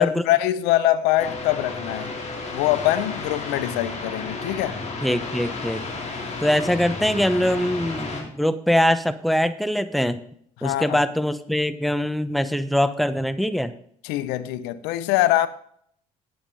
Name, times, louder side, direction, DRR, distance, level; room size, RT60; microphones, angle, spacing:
voice 1, 0.0-2.2 2.5-4.8 10.6-11.0 14.0-15.5, left 14 dB, 75° left, 0.7 m, -23 dB
sound 1, 1.2-8.2, left 3 dB, 40° left, 3.6 m, -32 dB
voice 2, 5.0-5.8 6.4-10.2 10.6-13.7, equal, ahead, 0.9 m, -23 dB
10.5 x 8.7 x 5.2 m
hypercardioid pair, 65°, 17 cm